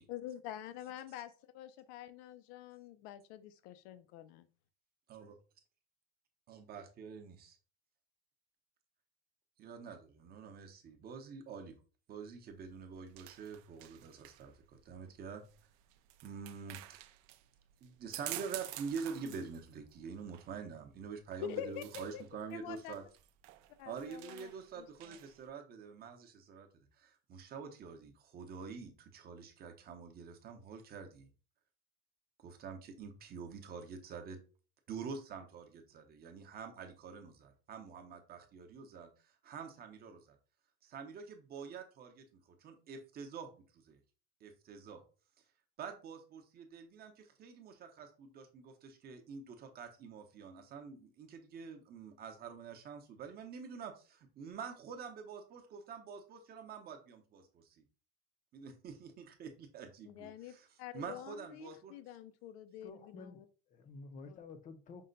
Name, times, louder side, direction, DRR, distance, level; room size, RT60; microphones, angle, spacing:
voice 1, 0.1-4.2 21.4-22.2 22.5-22.9 23.8-24.5 24.8-25.2 60.1-63.4 64.3-64.4, left 11 dB, 90° left, 0.5 m, -46 dB
voice 2, 6.5-7.6 9.6-11.8 12.1-15.5 16.2-17.0 17.8-23.0 23.8-31.3 32.4-34.4 34.9-40.4 40.8-44.0 44.4-45.0 45.8-57.8 58.5-60.7 60.9-62.0, right 6 dB, 30° right, 0.7 m, -47 dB
sound 1, 12.5-25.5, right 15 dB, 65° right, 0.4 m, -51 dB
voice 3, 62.8-65.0, left 4 dB, 25° left, 0.5 m, -51 dB
5.4 x 2.1 x 3.8 m
cardioid pair, 160°, 31 cm